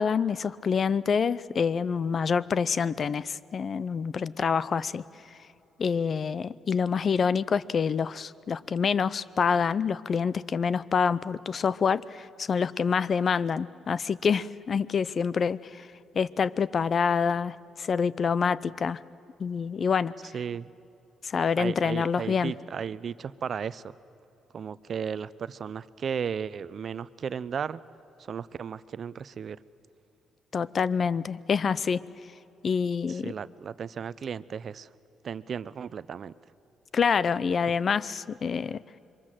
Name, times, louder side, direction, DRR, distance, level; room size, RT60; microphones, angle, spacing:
voice 1, 0.0-5.0 5.8-15.9 16.1-19.0 19.4-20.1 21.2-22.5 30.5-32.0 32.6-33.3 36.9-38.8, left 6 dB, 45° left, 18 dB, 0.6 m, -27 dB
voice 2, 20.3-20.7 21.6-23.9 24.5-27.8 28.2-29.6 33.1-34.9 35.2-36.3, right 7 dB, 50° right, 17 dB, 0.6 m, -35 dB
26.5 x 23.0 x 7.6 m, 2.8 s
cardioid pair, 90°, 0 cm